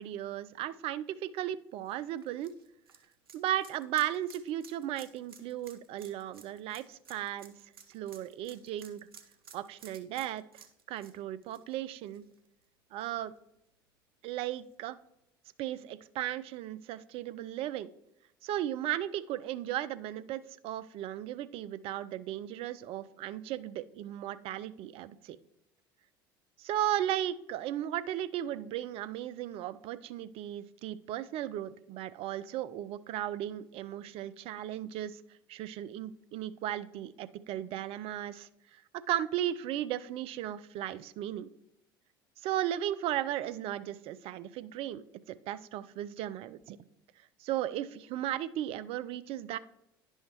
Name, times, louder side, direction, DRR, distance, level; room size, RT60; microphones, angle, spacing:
voice 1, 0.0-2.5 3.3-7.5 7.9-9.1 9.5-12.2 12.9-13.3 14.2-15.0 15.6-17.9 18.4-25.4 26.6-35.2 35.5-41.5 42.4-46.8 47.4-49.6, right 12 dB, 55° right, 16 dB, 0.4 m, -36 dB
sound 1, 1.9-12.6 13.0-13.1 14.6-14.7, right 6 dB, 90° right, 0.7 m, -55 dB
10.5 x 5.6 x 2.9 m, 0.83 s
hypercardioid pair, 70°, 12 cm